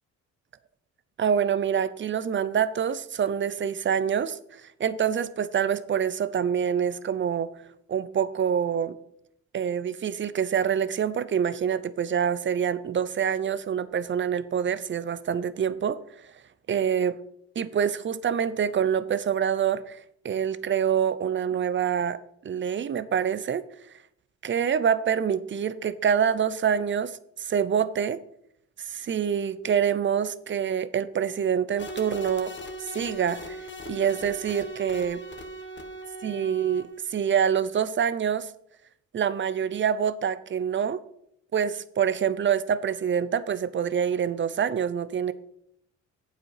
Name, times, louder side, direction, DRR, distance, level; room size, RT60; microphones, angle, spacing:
voice 1, 1.2-7.5 7.9-9.0 9.5-16.0 16.7-17.2 17.6-20.0 20.2-23.6 24.4-28.2 28.9-32.5 32.9-33.6 33.9-35.2 36.2-36.8 37.1-38.5 39.1-41.0 41.5-45.3, right 8 dB, 40° right, 16 dB, 0.7 m, -26 dB
sound 1, 31.8-37.2, equal, 40° left, 1.5 m, -40 dB
8.5 x 7.5 x 4.8 m, 0.74 s
cardioid pair, 90°, 30 cm